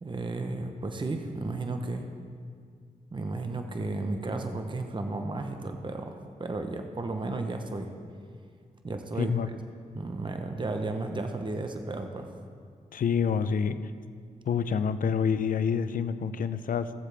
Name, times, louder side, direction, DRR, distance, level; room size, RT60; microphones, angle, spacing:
voice 1, 0.0-2.0 3.1-6.1 6.4-7.9 8.8-9.3 9.9-12.3, right 2 dB, 30° right, 5 dB, 0.9 m, -33 dB
voice 2, 9.2-9.5 12.9-13.8 14.5-16.9, left 7 dB, 65° left, 12 dB, 0.5 m, -27 dB
16.5 x 7.3 x 3.4 m, 2.1 s
cardioid pair, 60°, 15 cm